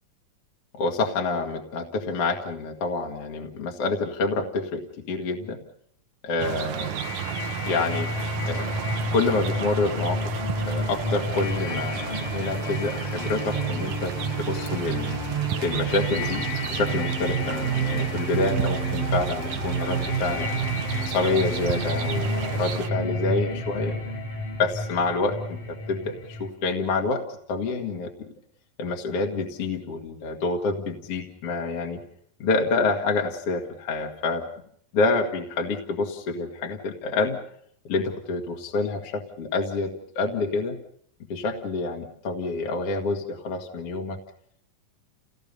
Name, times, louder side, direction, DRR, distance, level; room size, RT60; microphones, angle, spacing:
voice 1, 0.7-5.6 6.2-7.0 7.7-8.1 8.4-8.7 9.1-10.3 10.7-15.2 15.6-20.5 21.0-24.0 24.6-25.6 25.9-27.2 27.5-28.1 28.8-32.0 32.4-34.4 34.9-37.4 37.8-40.8 41.3-44.2, left 3 dB, 50° left, 2 dB, 2.5 m, -27 dB
sound 1, 6.4-22.9, right 12 dB, 75° right, 2.4 m, -34 dB
sound 2, 6.7-26.5, right 1 dB, 70° left, 6.6 m, -29 dB
29.5 x 18.0 x 5.4 m, 0.66 s
omnidirectional pair, 4.0 m